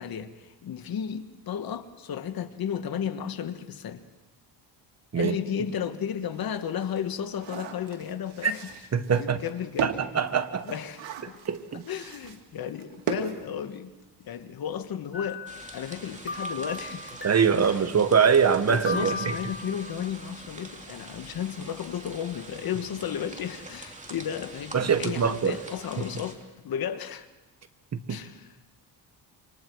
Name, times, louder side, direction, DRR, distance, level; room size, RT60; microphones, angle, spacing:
voice 1, 0.0-4.0 5.1-8.6 9.2-9.9 10.6-11.3 11.9-13.9 14.2-15.4 15.7-17.2 17.5-17.8 18.7-26.4 26.6-27.3 28.1-28.5, left 8 dB, 55° left, 1.5 m, -33 dB
sound 1, 5.5-5.6 6.1-14.2 14.4-14.5 14.8-15.1, right 7 dB, 90° right, 2.6 m, -38 dB
voice 2, 8.9-9.4 9.8-10.7 11.2-11.8 17.2-19.4 24.7-25.6 27.9-28.2, right 6 dB, 35° right, 1.4 m, -23 dB
sound 2, 15.1-16.0 16.3-17.7 18.7-20.3, left 2 dB, 25° left, 2.3 m, -36 dB
sound 3, 15.5-26.3, right 2 dB, 15° right, 3.0 m, -45 dB
28.5 x 26.5 x 4.7 m
cardioid pair, 105°, 43 cm